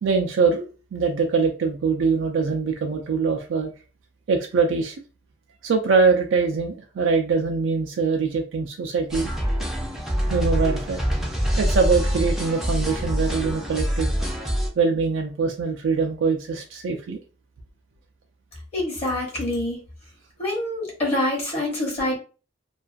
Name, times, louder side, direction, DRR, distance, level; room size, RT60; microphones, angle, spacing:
voice 1, 0.0-3.7 4.3-4.9 5.6-9.3 10.3-11.0 11.6-14.2 14.8-17.2, right 4 dB, 75° right, 3 dB, 0.4 m, -23 dB
sound 1, 9.1-14.7, equal, ahead, 0.5 m, -25 dB
voice 2, 18.7-19.8 20.4-22.2, left 1 dB, 35° left, -3 dB, 0.9 m, -25 dB
2.4 x 2.3 x 2.4 m, 0.35 s
head